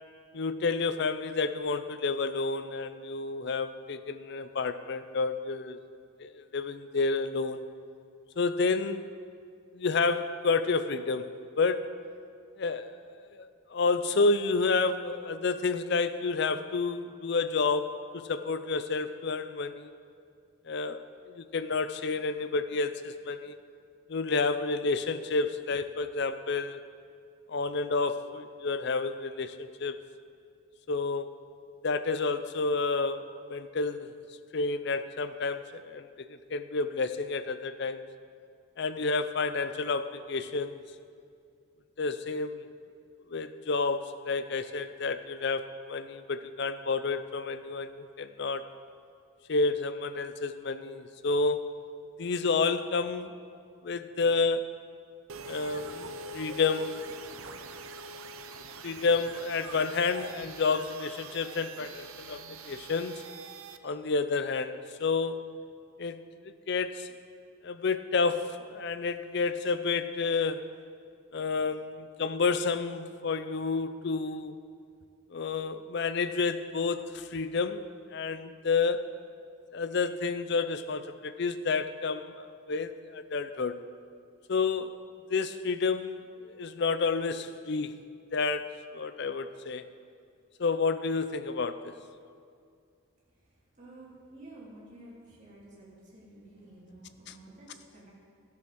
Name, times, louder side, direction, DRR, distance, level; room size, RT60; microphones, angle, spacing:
voice 1, 0.3-5.8 6.2-7.6 8.4-9.1 9.7-11.3 11.6-12.0 12.6-19.9 20.7-23.6 24.1-26.8 27.5-30.0 30.9-31.4 31.8-34.1 34.5-38.0 38.8-40.8 42.0-42.6 43.3-48.7 49.5-51.7 52.2-53.3 53.8-54.9 55.5-57.1 58.8-63.2 63.8-65.6 66.0-66.2 66.7-67.1 67.6-70.7 71.3-74.5 75.3-77.8 78.1-79.2 79.7-83.8 84.5-85.0 85.3-88.0 88.3-89.8 90.6-92.0, left 4 dB, 50° left, 11 dB, 0.5 m, -30 dB
sound 1, 55.3-63.8, right 3 dB, 75° right, 0.6 m, -44 dB
voice 2, 93.3-98.1, right 1 dB, 35° right, -7 dB, 3.1 m, -51 dB
13.0 x 7.1 x 6.1 m, 2.3 s
head